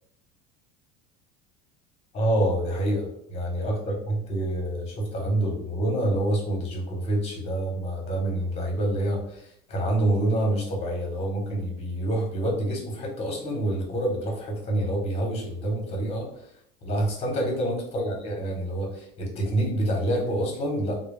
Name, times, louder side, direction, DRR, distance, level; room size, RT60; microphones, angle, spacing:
voice 1, 2.1-16.4 16.8-21.0, right 1 dB, 30° left, -1 dB, 0.9 m, -27 dB
2.2 x 2.1 x 3.2 m, 0.70 s
supercardioid pair, 140°, 21 cm